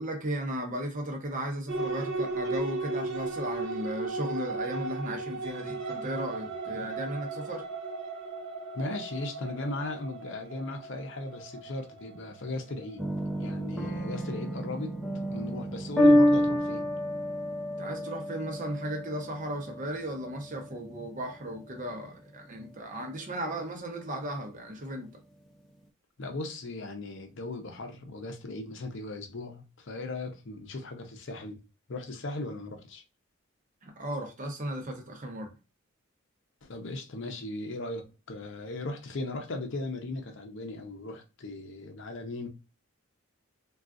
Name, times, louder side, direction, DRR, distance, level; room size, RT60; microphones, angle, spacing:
voice 1, 0.0-7.7 17.8-25.1 33.8-35.5, right 1 dB, 35° right, 0.7 m, -36 dB
sound 1, 1.7-13.6, right 3 dB, 65° right, 0.9 m, -36 dB
voice 2, 8.7-13.0 13.4-16.9 26.2-31.6 31.9-33.0 36.6-42.5, left 2 dB, 55° left, 0.6 m, -37 dB
sound 2, 13.0-22.0, left 1 dB, ahead, 0.4 m, -28 dB
3.6 x 2.3 x 2.4 m
head